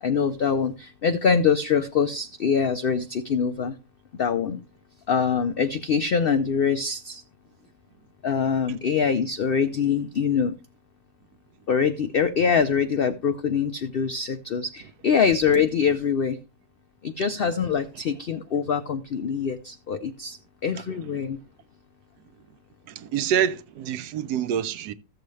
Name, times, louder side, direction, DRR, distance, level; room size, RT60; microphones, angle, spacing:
voice 1, 0.0-3.8 4.2-4.6 5.1-7.2 8.2-10.6 11.7-16.4 17.0-20.4 20.6-21.4, left 6 dB, 85° left, 0.5 m, -24 dB
voice 2, 22.9-24.9, right 9 dB, 90° right, 1.2 m, -26 dB
14.5 x 6.9 x 3.2 m
omnidirectional pair, 1.7 m